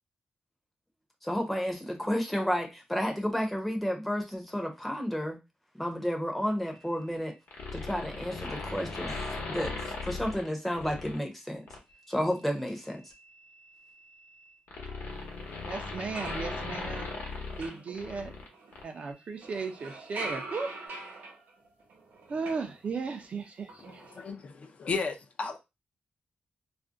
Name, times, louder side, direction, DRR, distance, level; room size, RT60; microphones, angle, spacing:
voice 1, 1.2-5.4 5.7-7.3 7.7-9.1 9.5-11.7 12.1-13.0, equal, 5° left, 0.6 m, -31 dB
sound 1, 7.5-11.2 11.7-11.9 13.1-18.5 18.7-18.8, left 3 dB, 80° left, 0.9 m, -38 dB
sound 2, 15.5-15.6 15.9-19.0 19.4-23.3 23.6-24.3, right 2 dB, 85° right, 0.8 m, -44 dB
voice 2, 15.7-17.1 17.6-18.3 18.8-20.7 22.3-24.0, right 4 dB, 45° right, 0.5 m, -36 dB
voice 3, 24.1-25.6, left 4 dB, 45° left, 0.4 m, -34 dB
2.5 x 2.1 x 3.5 m
wide cardioid pair, 165°, 3 cm